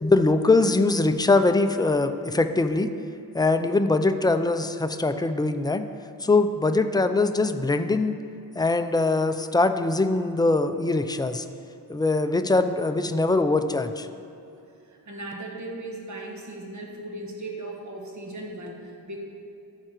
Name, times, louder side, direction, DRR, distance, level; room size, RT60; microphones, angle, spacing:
voice 1, 0.0-2.9 3.3-5.9 6.2-8.1 8.6-11.4 11.9-14.1, left 3 dB, 10° left, 9 dB, 0.3 m, -22 dB
voice 2, 14.9-19.2, right 2 dB, 50° right, -1 dB, 1.5 m, -37 dB
13.5 x 4.9 x 4.5 m, 2.7 s
wide cardioid pair, 110°, 36 cm